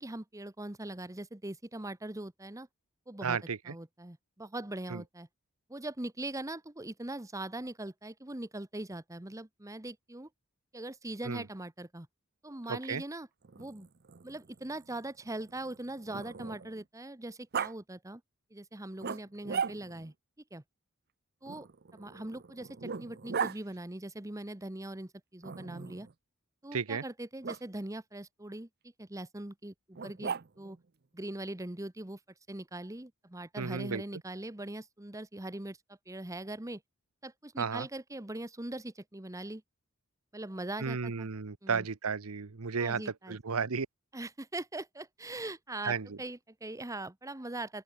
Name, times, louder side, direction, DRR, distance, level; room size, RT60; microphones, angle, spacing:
voice 1, 0.0-2.7 3.1-3.4 3.6-5.3 5.7-10.3 10.7-12.1 12.4-13.3 13.6-13.9 14.2-18.2 18.5-20.1 20.5-20.6 21.4-21.7 21.9-26.1 26.6-28.7 29.0-30.8 31.1-32.2 32.5-36.8 37.2-39.6 40.3-41.3 41.6-41.9 42.8-43.4 44.1-47.8, right 1 dB, 15° right, 1.1 m, -41 dB
voice 2, 3.2-3.7 4.9-5.0 11.3-11.4 12.7-13.0 26.7-27.0 33.6-34.0 37.6-37.9 40.8-43.0 43.3-43.9 45.8-46.2, right 5 dB, 85° right, 0.9 m, -33 dB
Growling, 13.4-16.8 17.5-17.7 19.0-20.1 21.5-23.6 25.4-26.1 27.4-27.6 29.9-30.8, right 6 dB, 50° right, 0.7 m, -38 dB
open air
head